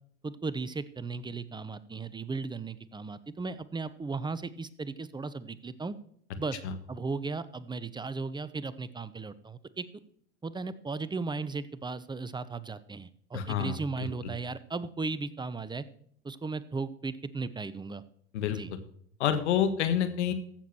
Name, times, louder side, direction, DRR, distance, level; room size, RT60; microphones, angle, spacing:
voice 1, 0.2-5.9 6.4-6.6 6.9-9.8 10.4-15.8 16.2-18.0 18.5-18.7, right 4 dB, 15° right, 16 dB, 0.8 m, -36 dB
voice 2, 13.3-14.1 18.3-18.6 19.2-20.3, left 9 dB, 80° left, 10 dB, 1.6 m, -28 dB
14.5 x 7.3 x 4.5 m, 0.65 s
hypercardioid pair, 85°, 34 cm